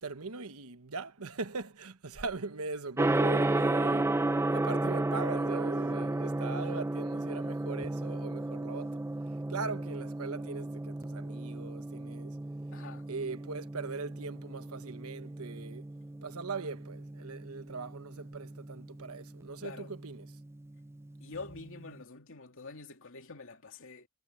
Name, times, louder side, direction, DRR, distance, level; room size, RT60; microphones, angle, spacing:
voice 1, 0.0-9.0 9.5-12.4 13.1-15.9 16.2-20.4, right 4 dB, 85° right, 1.2 m, -40 dB
Gong, 3.0-21.9, right 2 dB, 10° right, 0.4 m, -34 dB
voice 2, 12.7-13.1 19.6-19.9 21.2-24.1, left 3 dB, 65° left, 2.9 m, -46 dB
head